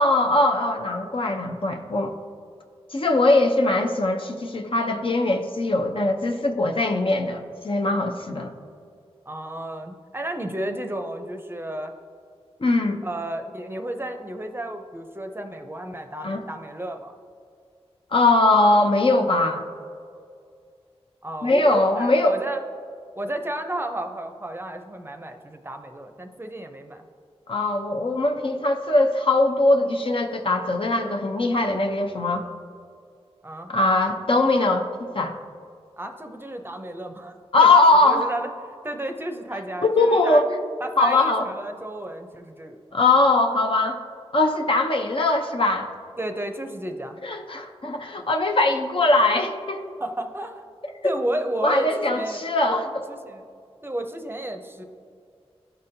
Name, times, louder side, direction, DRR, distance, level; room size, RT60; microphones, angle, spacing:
voice 1, 0.0-2.1 2.9-8.5 12.6-13.0 16.2-16.4 18.1-19.7 21.4-22.4 27.5-32.5 33.7-35.4 37.5-38.3 39.8-40.4 41.0-41.4 42.9-44.0 44.3-45.9 47.2-49.8 51.0-51.1 51.6-52.9, left 2 dB, 55° left, 3 dB, 0.7 m, -21 dB
voice 2, 9.3-11.9 13.0-17.1 21.2-22.6 23.2-27.1 33.4-33.7 36.0-37.7 38.0-40.4 40.8-42.8 46.2-47.2 50.0-50.7 51.0-52.4 52.7-52.8 53.1-53.5 53.8-54.8, right 1 dB, 20° right, 5 dB, 0.6 m, -32 dB
12.0 x 4.1 x 2.7 m, 2.3 s
wide cardioid pair, 55°, 11 cm